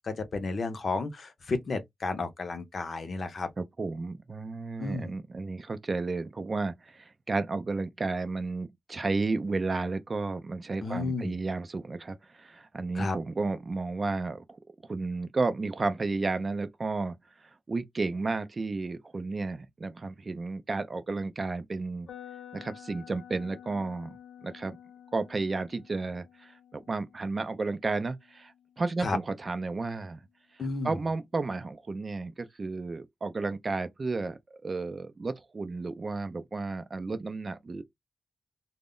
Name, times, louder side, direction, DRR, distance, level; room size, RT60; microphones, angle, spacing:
voice 1, 0.0-3.5 4.8-5.1 10.8-11.4 12.9-13.2 29.0-29.2 30.6-31.0, left 3 dB, 45° left, 0.5 m, -32 dB
voice 2, 3.6-14.6 14.9-22.1 22.5-24.2 24.4-24.8 25.1-30.2 30.8-37.8, right 3 dB, 30° right, 0.3 m, -32 dB
sound 1, 22.1-30.0, left 9 dB, 85° left, 0.7 m, -51 dB
2.0 x 2.0 x 3.6 m
wide cardioid pair, 145°, 0 cm